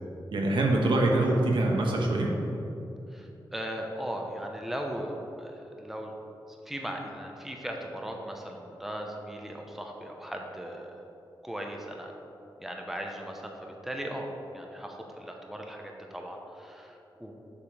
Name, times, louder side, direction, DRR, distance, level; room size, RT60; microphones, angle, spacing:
voice 1, 0.3-2.3, right 2 dB, 80° right, -1 dB, 1.1 m, -24 dB
voice 2, 3.1-6.1 6.5-11.1 11.4-12.1 12.6-17.3, equal, 5° right, 1 dB, 0.8 m, -38 dB
7.1 x 5.0 x 5.0 m, 2.8 s
wide cardioid pair, 95°, 8 cm